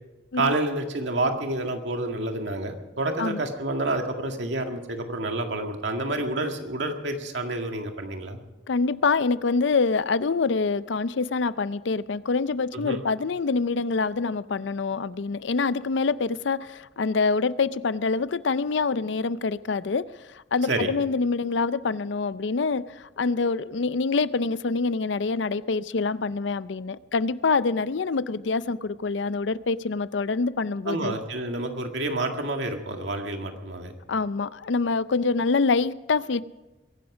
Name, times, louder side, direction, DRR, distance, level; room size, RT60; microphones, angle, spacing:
voice 1, 0.3-8.4 12.7-13.0 20.7-20.9 30.9-33.9, right 2 dB, 80° right, 4 dB, 2.0 m, -29 dB
voice 2, 8.7-31.1 34.1-36.4, left 4 dB, 80° left, 16 dB, 0.5 m, -26 dB
22.5 x 11.5 x 5.0 m, 1.1 s
head